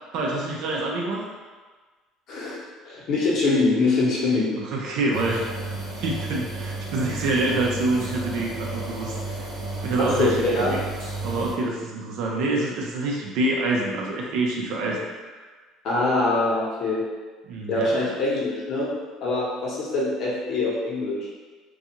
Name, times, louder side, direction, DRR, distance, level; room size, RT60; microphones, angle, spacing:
voice 1, 0.1-1.2 4.6-5.4 5.9-9.1 9.8-10.8 11.2-15.1 17.5-18.1, right 2 dB, 70° right, -2 dB, 0.4 m, -26 dB
voice 2, 2.3-2.6 2.8-4.5 10.0-10.7 15.8-17.0 17.7-18.9 19.2-21.3, left 2 dB, 60° left, -5 dB, 0.9 m, -23 dB
sound 1, 5.1-11.5, right 2 dB, 90° right, 0.8 m, -33 dB
2.5 x 2.3 x 2.8 m, 1.4 s
supercardioid pair, 85°, 0 cm